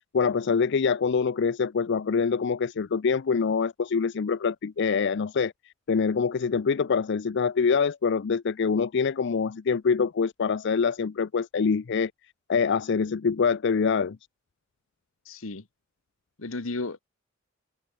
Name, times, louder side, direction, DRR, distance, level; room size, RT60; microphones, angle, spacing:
voice 1, 0.1-5.5 5.9-12.1 12.5-14.2, left 5 dB, 60° left, 0.5 m, -25 dB
voice 2, 15.3-15.6 16.4-17.0, left 2 dB, 90° left, 1.4 m, -33 dB
head